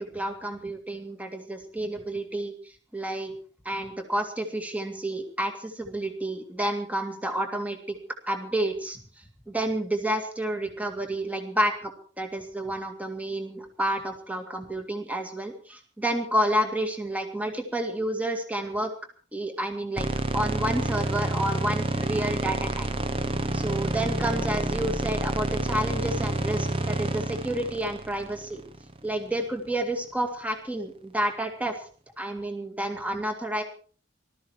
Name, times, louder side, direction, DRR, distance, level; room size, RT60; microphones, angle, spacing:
voice 1, 0.0-3.3 3.6-7.8 8.3-9.0 9.5-11.9 12.2-18.9 19.3-20.1 20.3-22.9 23.5-28.6 29.0-31.7 32.2-33.6, right 1 dB, 10° right, 5 dB, 2.2 m, -30 dB
sound 1, 20.0-29.1, right 1 dB, 30° right, 1.0 m, -29 dB
19.5 x 13.5 x 4.7 m, 0.42 s
head